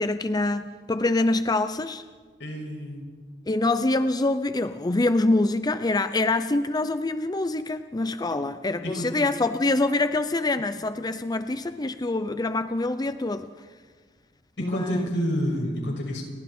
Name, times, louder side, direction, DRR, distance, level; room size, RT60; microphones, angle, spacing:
voice 1, 0.0-2.0 3.5-13.5 14.6-15.1, left 2 dB, 20° left, 11 dB, 0.6 m, -25 dB
voice 2, 2.4-3.0 8.8-9.1 14.6-16.3, equal, 85° left, 0 dB, 6.5 m, -28 dB
29.5 x 24.0 x 4.3 m, 1.5 s
head